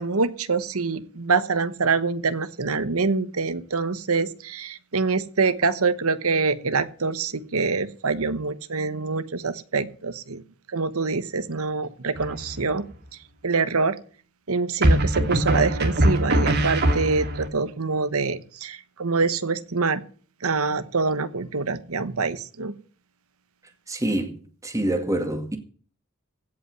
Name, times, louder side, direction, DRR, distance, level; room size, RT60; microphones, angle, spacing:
voice 1, 0.0-10.4 10.7-12.8 13.4-14.0 14.5-20.0 20.4-22.7, right 4 dB, 70° right, 1.1 m, -25 dB
sound 1, 12.2-12.7 14.8-17.5, right 1 dB, 50° right, 2.2 m, -22 dB
voice 2, 23.9-24.4 24.6-25.6, right 1 dB, 15° right, 2.0 m, -26 dB
16.0 x 5.6 x 9.0 m
head